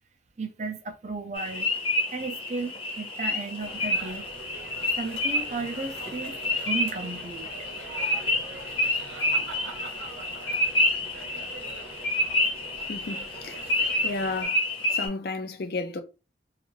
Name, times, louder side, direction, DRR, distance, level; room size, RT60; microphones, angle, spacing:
voice 1, 0.4-1.7 2.1-4.2 5.0-6.3 6.7-7.5 9.2-9.5, right 3 dB, 40° right, 0.4 m, -34 dB
sound 1, 1.3-15.1, left 1 dB, 30° left, 0.8 m, -29 dB
sound 2, 3.6-14.5, right 3 dB, 85° right, 0.7 m, -44 dB
voice 2, 12.9-13.6 14.0-14.6 14.9-16.0, left 3 dB, 55° left, 0.4 m, -32 dB
2.5 x 2.4 x 3.1 m
head